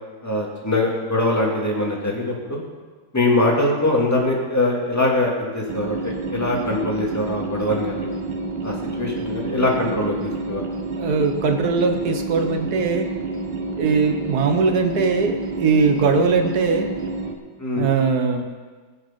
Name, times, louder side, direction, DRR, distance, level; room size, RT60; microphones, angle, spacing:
voice 1, 0.2-2.6 3.1-8.1 8.6-10.6 17.6-17.9, left 2 dB, 10° left, -1 dB, 1.9 m, -22 dB
sound 1, 5.7-17.3, right 3 dB, 85° right, 1.8 m, -29 dB
voice 2, 11.0-13.1 13.8-16.9 17.8-18.4, right 4 dB, 60° right, 5 dB, 1.4 m, -20 dB
19.0 x 6.4 x 5.6 m, 1.4 s
omnidirectional pair, 2.0 m